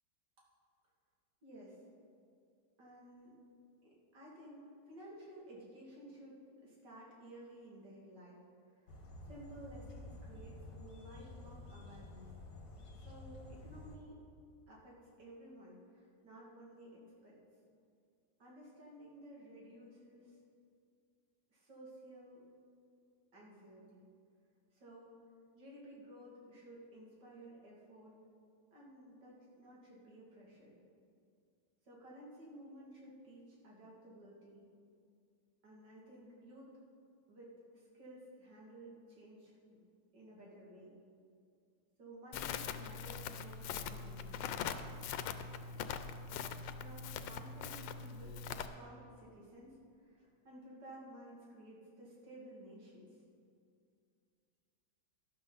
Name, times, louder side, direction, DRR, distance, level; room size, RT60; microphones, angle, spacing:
voice 1, 1.4-1.8 2.8-3.4 3.8-8.4 8.7-9.0 9.2-12.3 13.0-14.2 14.7-17.4 18.4-20.4 21.5-22.5 23.3-24.1 24.7-25.2 25.5-28.2 28.7-30.8 31.8-34.6 35.6-36.8 37.3-39.8 40.1-40.9 42.0-44.6 46.8-53.2, right 1 dB, 70° right, -4 dB, 3.0 m, -55 dB
sound 1, 8.9-14.0, left 2 dB, 50° left, 1.7 m, -51 dB
Crackle, 42.3-48.7, left 7 dB, 85° left, 1.3 m, -42 dB
12.5 x 11.5 x 4.0 m, 2.4 s
omnidirectional pair, 2.0 m